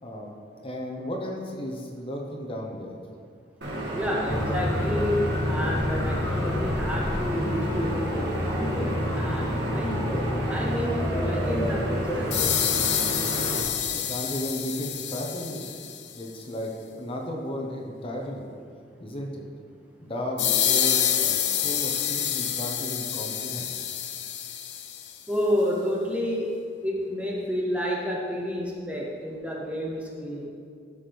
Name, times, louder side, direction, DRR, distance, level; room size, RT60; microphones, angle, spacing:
voice 1, 0.0-0.3 0.6-3.0 13.7-15.6 16.1-18.4 19.0-19.4 20.0-23.7, equal, 30° left, 1 dB, 1.0 m, -34 dB
sound 1, 3.6-13.6, right 1 dB, 70° right, 1.6 m, -31 dB
voice 2, 3.9-12.3 25.3-30.5, equal, 10° right, -2 dB, 0.8 m, -30 dB
sound 2, 4.3-12.7, left 1 dB, 15° left, 0.3 m, -29 dB
sound 3, 12.3-16.1 20.4-25.1, left 10 dB, 70° left, 0.6 m, -27 dB
12.0 x 5.9 x 3.5 m, 2.2 s
head